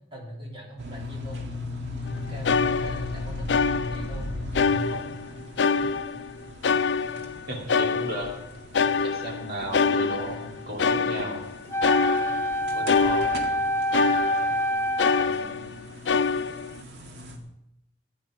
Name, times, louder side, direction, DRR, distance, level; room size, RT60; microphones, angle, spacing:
voice 1, 0.1-1.5 2.1-4.3 4.6-5.1, equal, 30° right, -2 dB, 3.9 m, -43 dB
sound 1, 0.8-17.4, left 1 dB, 85° right, 1.9 m, -38 dB
sound 2, 2.1-2.2 2.4-4.2 4.5-5.3 5.6-8.4 8.7-14.7 15.0-15.8 16.1-16.8, left 5 dB, 80° left, 0.5 m, -25 dB
voice 2, 7.5-8.3 9.0-11.4 12.7-13.4 15.1-15.7, right 1 dB, 60° right, 0 dB, 2.5 m, -35 dB
Wind instrument woodwind instrument, 11.7-15.5, equal, 15° left, 0.7 m, -26 dB
15.5 x 9.5 x 4.9 m, 0.80 s
head